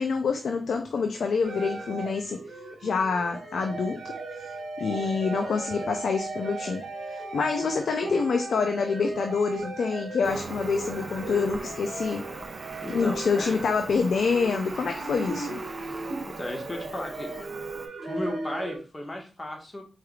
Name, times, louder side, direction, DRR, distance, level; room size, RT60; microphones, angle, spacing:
voice 1, 0.0-2.4 2.8-4.5 4.8-12.3 12.9-15.6, left 5 dB, 85° left, 0.4 m, -27 dB
sound 1, 1.4-18.8, right 2 dB, 90° right, 1.2 m, -36 dB
Cricket, 10.2-17.9, right 3 dB, 55° right, 0.6 m, -41 dB
voice 2, 12.8-13.5 16.3-17.3 18.0-19.8, left 1 dB, 30° left, 1.3 m, -35 dB
4.6 x 3.2 x 2.3 m
cardioid pair, 65°, 0 cm